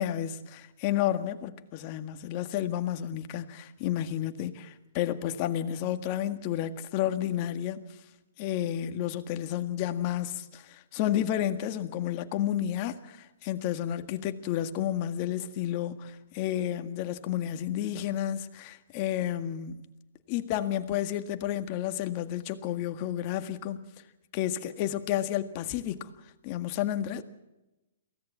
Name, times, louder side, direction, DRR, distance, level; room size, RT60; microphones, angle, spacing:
voice 1, 0.0-7.8 8.4-19.8 20.3-23.8 24.3-26.1 26.4-27.2, left 11 dB, 40° left, 1.8 m, -31 dB
23.5 x 17.0 x 7.4 m
hypercardioid pair, 135°, 0 cm